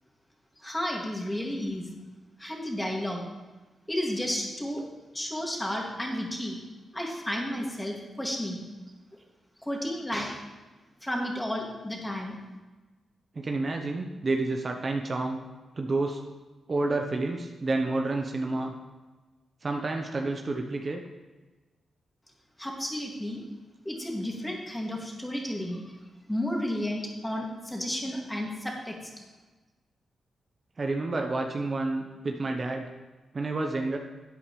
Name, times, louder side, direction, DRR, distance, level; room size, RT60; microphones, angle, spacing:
voice 1, 0.6-1.9 2.4-3.2 3.9-6.6 6.9-8.6 9.6-10.4 11.0-12.4 22.6-23.4 23.8-25.9 26.3-28.9, left 1 dB, 10° left, -1 dB, 2.4 m, -32 dB
voice 2, 13.3-15.4 15.8-16.2 16.7-18.7 19.6-21.0 30.8-32.9 33.3-34.0, right 2 dB, 40° right, 3 dB, 0.9 m, -29 dB
12.5 x 8.5 x 3.3 m, 1.2 s
cardioid pair, 60°, 0 cm